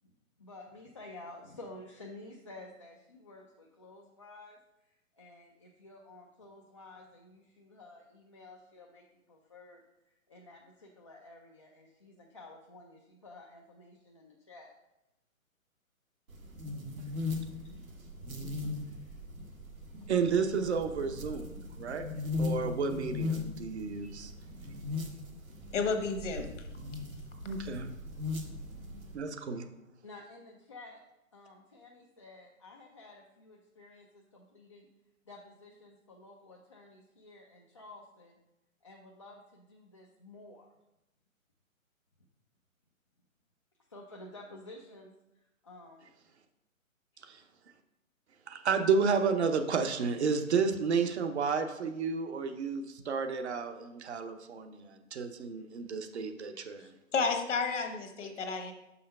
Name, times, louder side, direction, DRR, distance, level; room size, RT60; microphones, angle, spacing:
voice 1, 0.4-14.7 17.3-17.7 18.7-19.2 30.0-31.0 31.3-34.9 35.3-38.4 38.8-40.7 43.9-46.1 47.3-47.4, left 2 dB, 25° left, -2 dB, 0.4 m, -52 dB
sound 1, 16.3-29.1, left 3 dB, 85° right, 1.6 m, -39 dB
voice 2, 20.1-22.0 22.4-24.3 27.4-27.9 29.1-29.7 47.2-47.4 48.5-56.9, right 5 dB, 50° right, 6 dB, 0.8 m, -31 dB
voice 3, 25.7-26.5 57.1-58.7, left 4 dB, 60° left, 5 dB, 1.3 m, -31 dB
5.6 x 5.1 x 5.4 m, 0.93 s
figure-of-eight pair, 135°, 42 cm